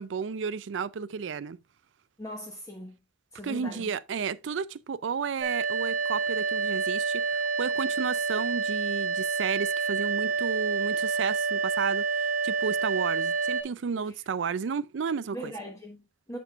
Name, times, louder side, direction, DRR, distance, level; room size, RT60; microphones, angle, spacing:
voice 1, 0.0-1.6 3.4-15.5, right 6 dB, 90° right, 0.4 m, -32 dB
voice 2, 2.2-2.9 3.3-3.9 15.3-16.4, equal, 20° left, 1.1 m, -40 dB
sound 1, 5.4-13.6, right 5 dB, 55° right, 1.3 m, -28 dB
7.5 x 7.0 x 2.4 m
head